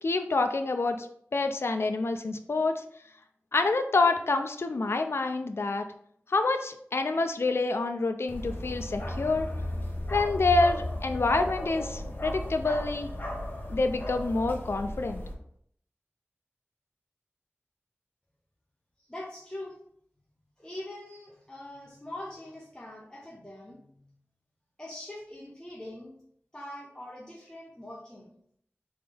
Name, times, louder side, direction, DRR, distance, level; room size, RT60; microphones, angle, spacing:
voice 1, 0.0-1.1 1.3-2.8 3.5-5.8 6.3-9.5 10.1-13.1 13.7-15.2, left 3 dB, 60° left, 7 dB, 0.4 m, -27 dB
Bark, 8.3-15.3, left 1 dB, 45° left, 1.0 m, -35 dB
voice 2, 19.1-19.7 20.6-23.8 24.8-26.1 26.5-28.3, left 1 dB, 15° left, -4 dB, 0.9 m, -42 dB
3.8 x 3.6 x 3.4 m, 0.67 s
wide cardioid pair, 60°, 5 cm